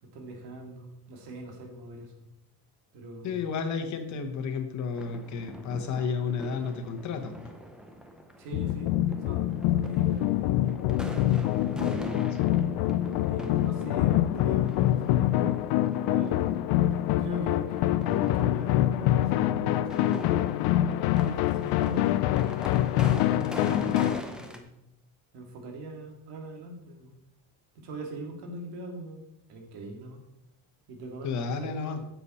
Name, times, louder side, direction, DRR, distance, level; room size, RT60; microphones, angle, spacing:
voice 1, 0.0-2.3 2.9-3.4 8.4-8.9 9.2-10.4 10.7-10.9 11.9-12.4 13.3-15.5 16.0-16.5 17.2-18.0 18.3-20.9 21.3-22.2 23.3-24.7 25.3-27.1 27.7-29.2 29.5-30.2 30.9-32.0, right 1 dB, 75° right, 3 dB, 2.3 m, -41 dB
voice 2, 3.2-7.4 12.4-12.5 31.2-32.0, left 5 dB, 45° left, 7 dB, 1.1 m, -32 dB
sound 1, 4.9-24.6, equal, ahead, 0.5 m, -43 dB
sound 2, 8.5-24.2, left 13 dB, 65° left, 0.5 m, -25 dB
9.7 x 7.1 x 4.2 m, 0.86 s
cardioid pair, 170°, 40 cm